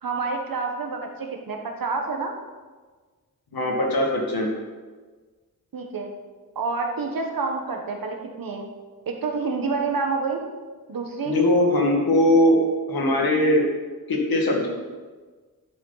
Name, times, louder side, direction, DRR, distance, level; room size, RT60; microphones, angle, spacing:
voice 1, 0.0-2.4 5.7-6.1 6.5-8.7 9.1-10.4 10.9-11.4, right 4 dB, 70° right, 3 dB, 1.4 m, -28 dB
voice 2, 3.5-4.5 11.3-12.6 12.9-13.6 14.1-14.7, left 1 dB, 80° left, -1 dB, 2.1 m, -20 dB
11.5 x 7.3 x 4.1 m, 1.4 s
wide cardioid pair, 170°, 36 cm